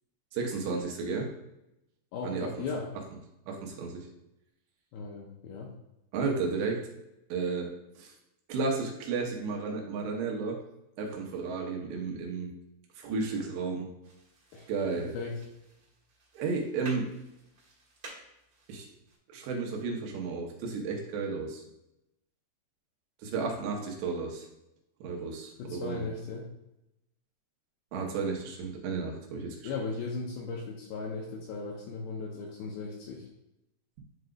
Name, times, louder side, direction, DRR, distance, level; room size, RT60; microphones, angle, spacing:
voice 1, 0.3-1.3 2.2-2.5 3.5-4.1 6.1-6.9 7.3-8.1 8.5-10.6 11.0-12.5 13.0-13.9 14.7-15.1 16.4-17.1 18.7-18.9 19.3-21.6 23.2-24.5 25.0-26.1 27.9-29.7, right 4 dB, 90° right, 1 dB, 3.3 m, -33 dB
voice 2, 2.1-2.9 4.9-5.7 14.5-15.4 25.6-26.5 29.6-33.3, left 4 dB, 80° left, -1 dB, 2.2 m, -37 dB
sound 1, 14.0-19.2, right 2 dB, 50° right, 1.4 m, -52 dB
11.0 x 3.8 x 2.3 m, 0.90 s
omnidirectional pair, 4.9 m